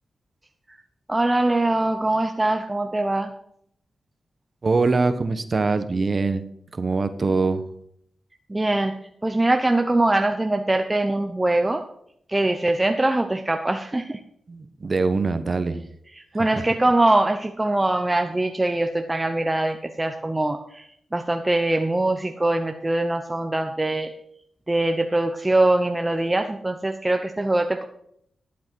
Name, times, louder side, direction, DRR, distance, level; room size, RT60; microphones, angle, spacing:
voice 1, 1.1-3.3 8.5-9.0 9.2-11.8 12.3-14.2 16.3-20.9 21.1-24.1 24.7-27.8, right 2 dB, 20° right, 5 dB, 0.9 m, -22 dB
voice 2, 4.6-6.5 6.7-7.6 14.5-15.8 16.3-16.7, right 3 dB, 45° right, 11 dB, 1.2 m, -23 dB
12.0 x 8.5 x 4.7 m, 0.71 s
cardioid pair, 60°, 0 cm